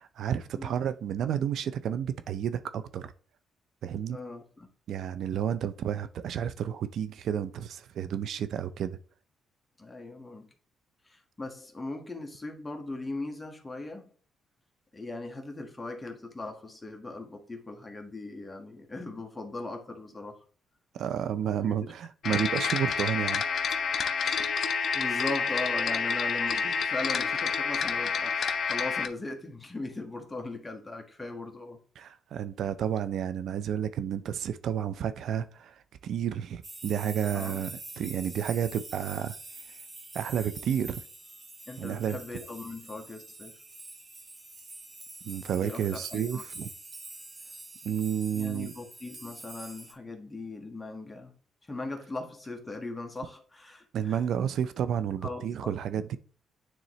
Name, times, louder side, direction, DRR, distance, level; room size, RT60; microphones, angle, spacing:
voice 1, 0.0-3.1 3.8-4.2 4.9-9.0 20.9-23.4 32.0-39.4 40.1-41.0 41.8-42.2 45.2-46.7 47.8-48.7 53.9-56.2, right 9 dB, 70° right, 0.5 m, -31 dB
voice 2, 4.1-4.7 9.8-10.5 11.0-14.1 14.9-20.4 21.6-21.9 24.9-31.8 37.3-37.7 38.1-38.2 41.7-43.5 45.6-46.4 48.3-51.3 51.7-54.2 54.5-54.6 55.2-56.2, left 2 dB, 15° left, 1.6 m, -39 dB
sound 1, 22.2-29.1, left 6 dB, 55° left, 0.7 m, -29 dB
sound 2, 36.6-49.9, right 2 dB, 30° right, 1.6 m, -45 dB
9.1 x 3.7 x 3.1 m
cardioid pair, 90°, 0 cm